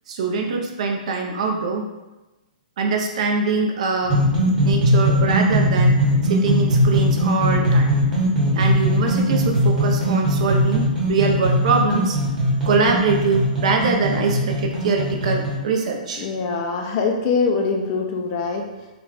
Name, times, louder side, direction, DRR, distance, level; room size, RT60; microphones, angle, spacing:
voice 1, 0.1-1.9 2.8-4.3 4.6-6.0 6.2-7.9 8.5-12.2 12.6-16.2, right 4 dB, 50° right, 2 dB, 0.5 m, -23 dB
sound 1, 4.0-15.5, equal, 10° right, 1.0 m, -19 dB
voice 2, 16.2-18.9, left 4 dB, 25° left, 2 dB, 0.3 m, -23 dB
3.4 x 2.2 x 3.9 m, 1.1 s
hypercardioid pair, 165°, 5 cm